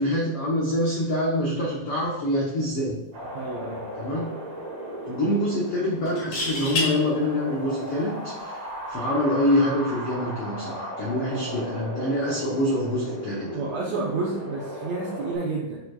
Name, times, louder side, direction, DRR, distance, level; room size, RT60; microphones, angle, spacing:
voice 1, 0.0-3.0 4.0-4.3 5.1-8.6 8.9-13.6, left 1 dB, 80° left, -4 dB, 1.3 m, -25 dB
Wind, 3.1-15.3, equal, 55° right, 1.1 m, -36 dB
sound 1, 3.2-3.5 3.8-3.9 6.1-6.9 8.7-8.9, left 2 dB, 60° left, 3.5 m, -28 dB
voice 2, 3.3-3.9 13.5-15.8, right 3 dB, 80° right, -3 dB, 1.5 m, -30 dB
9.2 x 4.6 x 2.3 m, 0.98 s
omnidirectional pair, 4.1 m